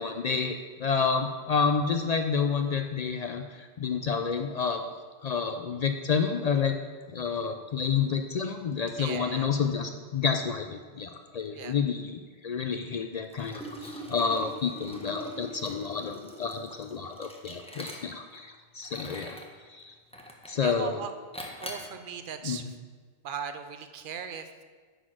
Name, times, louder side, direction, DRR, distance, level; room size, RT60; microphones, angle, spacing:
voice 1, 0.0-4.8 5.2-6.7 7.1-19.4 19.7-19.9 20.5-21.0 22.4-22.7, left 6 dB, 70° left, 5 dB, 0.3 m, -29 dB
voice 2, 9.0-9.5 11.5-11.7 20.6-21.1 21.6-22.7 23.2-24.5, right 7 dB, 55° right, 8 dB, 0.7 m, -38 dB
Liquid, 13.3-18.4 18.8-19.5 20.1-20.6 21.3-21.9, equal, 5° left, 0.7 m, -42 dB
9.1 x 4.2 x 6.1 m, 1.5 s
omnidirectional pair, 1.2 m